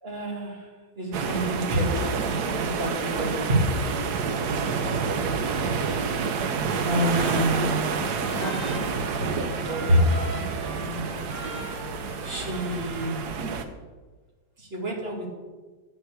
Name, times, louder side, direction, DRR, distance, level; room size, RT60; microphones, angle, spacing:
voice 1, 0.0-0.7 1.0-4.0 6.8-7.9 8.2-11.0 12.2-13.2 14.6-15.3, equal, 30° right, -1 dB, 2.6 m, -28 dB
sound 1, 1.1-13.6, right 5 dB, 65° right, 1.4 m, -28 dB
Trumpet, 6.7-13.4, equal, 5° left, 2.0 m, -42 dB
9.7 x 7.0 x 8.4 m, 1.3 s
omnidirectional pair, 2.0 m